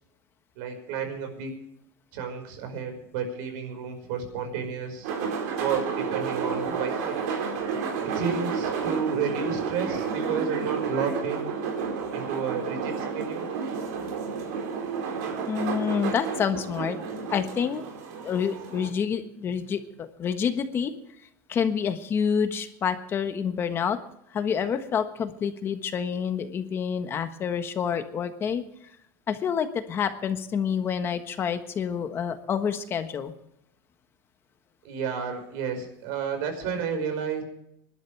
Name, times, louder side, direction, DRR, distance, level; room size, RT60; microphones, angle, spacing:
voice 1, 0.5-1.5 2.1-5.1 5.6-7.2 8.0-11.5 12.1-13.5 34.8-37.4, right 6 dB, 60° right, 6 dB, 5.2 m, -31 dB
sound 1, 5.0-18.9, right 6 dB, 80° right, 4.7 m, -31 dB
voice 2, 15.4-17.0 17.3-17.8 18.2-20.9 21.5-24.0 24.3-28.6 29.3-33.3, left 7 dB, 25° left, 8 dB, 1.4 m, -28 dB
26.0 x 12.0 x 3.4 m, 0.76 s
supercardioid pair, 155°, 9 cm